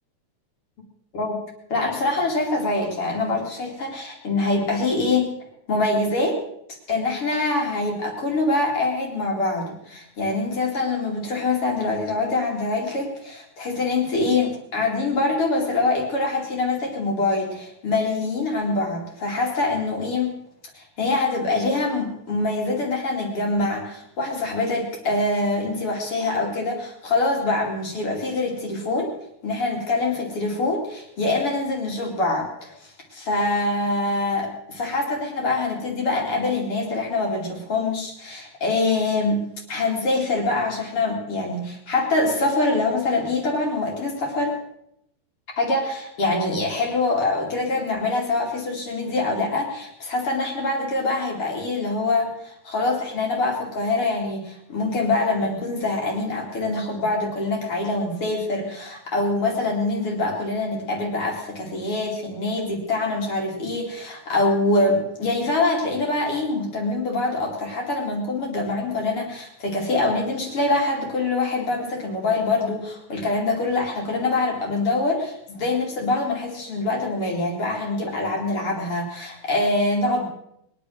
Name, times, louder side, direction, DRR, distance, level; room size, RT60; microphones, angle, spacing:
voice 1, 1.7-5.3 5.7-6.4 6.9-20.3 20.7-29.1 29.4-39.4 39.7-44.5 45.6-80.3, left 2 dB, 50° left, 0 dB, 3.4 m, -24 dB
22.0 x 10.0 x 6.4 m, 0.77 s
omnidirectional pair, 3.4 m